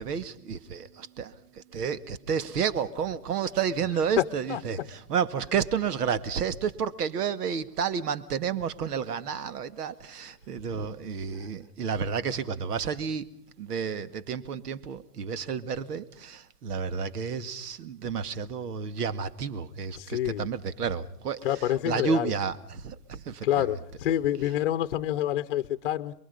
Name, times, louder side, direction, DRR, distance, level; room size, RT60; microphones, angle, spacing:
voice 1, 0.0-13.3 13.6-23.7, right 6 dB, 75° right, 2.0 m, -31 dB
voice 2, 20.0-20.5 21.4-22.3 23.4-26.1, left 12 dB, 35° left, 0.9 m, -27 dB
29.0 x 22.5 x 5.4 m
supercardioid pair, 180°, 47 cm